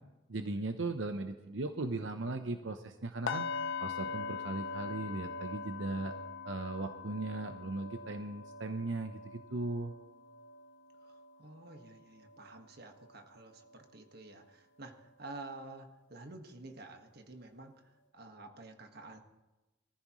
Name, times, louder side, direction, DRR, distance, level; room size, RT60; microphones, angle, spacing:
voice 1, 0.3-3.5 3.8-6.1 6.4-9.9, right 2 dB, 85° right, 7 dB, 0.9 m, -38 dB
sound 1, 3.3-13.2 13.5-13.8 14.2-14.4, left 5 dB, 85° left, 0.8 m, -42 dB
voice 2, 11.4-17.7 18.1-19.2, right 2 dB, 55° right, 5 dB, 1.7 m, -50 dB
24.0 x 14.5 x 3.1 m, 1.1 s
head